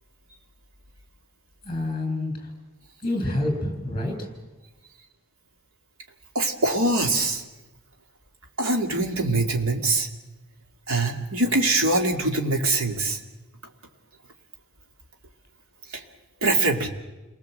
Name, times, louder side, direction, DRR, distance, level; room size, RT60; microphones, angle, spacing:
voice 1, 1.6-2.5 3.0-4.3, left 1 dB, 25° left, 5 dB, 6.3 m, -27 dB
voice 2, 6.3-7.4 8.6-10.1 10.9-13.2 15.9-16.0 16.4-16.9, right 2 dB, 70° right, 3 dB, 2.3 m, -23 dB
29.0 x 20.0 x 7.8 m, 1.1 s
head